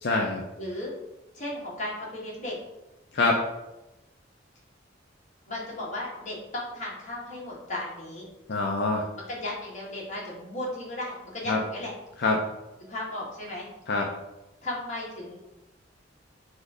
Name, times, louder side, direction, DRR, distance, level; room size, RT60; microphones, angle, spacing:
voice 1, 0.0-0.4 3.1-3.4 8.5-9.0 11.5-11.6 12.2-12.4 13.9-14.1, left 3 dB, 55° left, 0 dB, 0.4 m, -24 dB
voice 2, 0.6-0.9 1.3-2.6 5.5-8.3 9.3-11.9 12.9-13.7 14.6-15.4, left 1 dB, 40° left, -5 dB, 1.3 m, -35 dB
4.2 x 2.6 x 4.8 m, 1.0 s
head